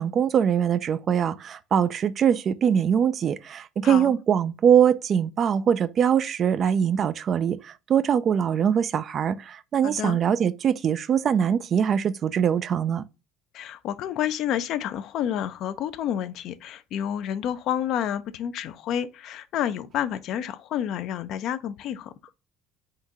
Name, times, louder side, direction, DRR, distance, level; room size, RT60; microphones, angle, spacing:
voice 1, 0.0-13.0, right 8 dB, 45° right, 0.3 m, -22 dB
voice 2, 3.8-4.1 9.8-10.2 13.5-22.1, left 10 dB, 60° left, 0.4 m, -29 dB
3.8 x 2.7 x 4.6 m
supercardioid pair, 90°, 0 cm